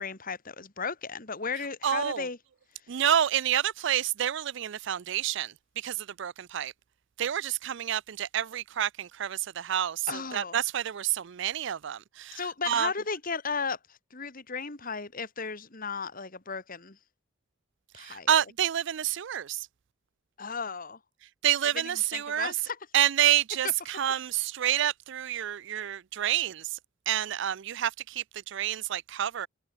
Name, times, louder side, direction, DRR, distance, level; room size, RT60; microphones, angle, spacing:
voice 1, 0.0-2.4 10.1-10.6 12.3-17.0 17.9-18.3 20.4-21.0 21.7-22.8 23.6-23.7, left 5 dB, 45° left, 2.2 m, -35 dB
voice 2, 1.8-2.3 2.9-6.7 7.2-12.4 12.7-12.9 18.0-19.7 21.4-22.5 22.9-26.8 27.1-29.5, right 10 dB, 60° right, 0.4 m, -28 dB
head